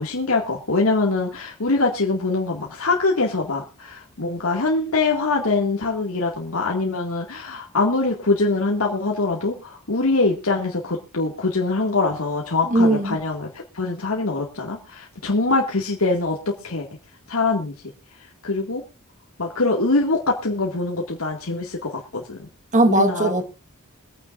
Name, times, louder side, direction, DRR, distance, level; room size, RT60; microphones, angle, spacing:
voice 1, 0.0-13.5 13.7-16.9 17.3-17.7 18.4-18.8 19.4-22.5 22.8-23.3, left 3 dB, 85° left, 2.1 m, -23 dB
voice 2, 12.7-13.2 22.7-23.4, right 1 dB, 35° right, 1.5 m, -18 dB
23.5 x 9.1 x 2.5 m
head